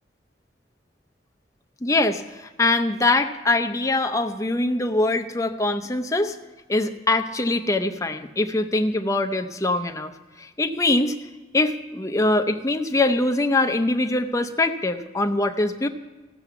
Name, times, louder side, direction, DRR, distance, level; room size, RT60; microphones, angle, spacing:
voice 1, 1.8-6.4 6.7-10.1 10.4-11.2 11.5-15.9, left 2 dB, 20° left, 7 dB, 0.6 m, -23 dB
15.5 x 7.1 x 6.9 m, 1.3 s
head